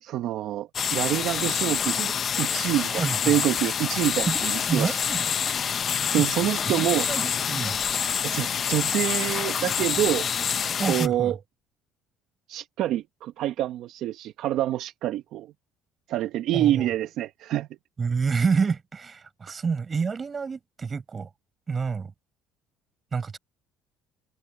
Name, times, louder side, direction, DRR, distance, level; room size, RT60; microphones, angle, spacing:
voice 1, 0.0-5.0 6.1-7.1 8.2-10.3 10.9-11.4 12.5-15.5 16.1-17.7, right 13 dB, 65° right, 1.2 m, -26 dB
sound 1, 0.7-11.1, left 7 dB, 45° left, 1.1 m, -27 dB
voice 2, 2.9-3.3 4.3-5.3 6.1-6.2 6.7-7.8 10.8-11.3 16.5-16.9 18.0-21.3 21.7-22.1 23.1-23.4, right 5 dB, 30° right, 5.7 m, -28 dB
open air
supercardioid pair, 100°, 0 cm